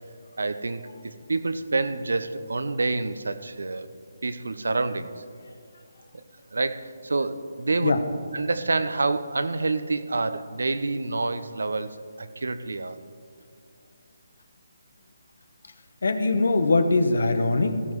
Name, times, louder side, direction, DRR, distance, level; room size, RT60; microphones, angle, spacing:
voice 1, 0.4-3.9 4.2-5.2 6.5-8.0 8.3-13.0, right 3 dB, 70° right, 12 dB, 0.7 m, -28 dB
voice 2, 16.0-17.8, left 3 dB, 65° left, 9 dB, 1.1 m, -22 dB
18.0 x 14.5 x 3.2 m, 2.3 s
figure-of-eight pair, 145°, 0 cm